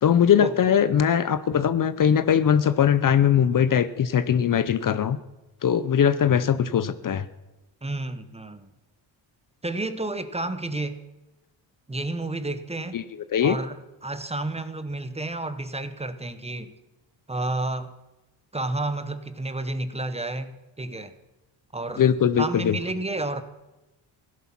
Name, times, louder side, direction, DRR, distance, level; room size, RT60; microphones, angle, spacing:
voice 1, 0.0-5.2 5.6-7.3 12.9-13.0 13.3-13.6 22.0-22.8, left 8 dB, 45° left, 14 dB, 0.7 m, -21 dB
voice 2, 7.8-8.7 9.6-11.0 11.9-13.0 13.4-16.7 17.3-17.9 18.5-21.1 21.7-23.4, right 2 dB, 15° right, 11 dB, 0.9 m, -31 dB
16.5 x 11.0 x 6.0 m, 1.0 s
cardioid pair, 120°, 46 cm